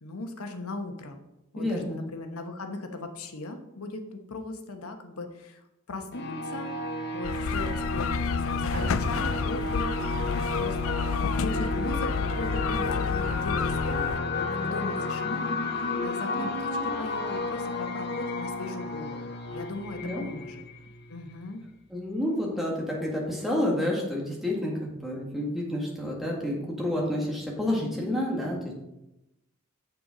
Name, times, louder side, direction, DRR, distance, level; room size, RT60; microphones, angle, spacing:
voice 1, 0.0-1.2 1.5-11.0 11.4-20.6 21.1-21.6, left 2 dB, 90° left, 5 dB, 1.1 m, -38 dB
voice 2, 1.6-2.0 20.0-20.3 21.9-28.7, left 1 dB, ahead, -3 dB, 1.9 m, -29 dB
sound 1, 6.1-21.5, left 2 dB, 50° left, 0.8 m, -32 dB
sound 2, 7.2-14.2, left 7 dB, 70° left, 0.3 m, -31 dB
Explosion, 8.7-10.5, equal, 70° right, 2.0 m, -36 dB
6.9 x 6.8 x 5.0 m, 0.89 s
head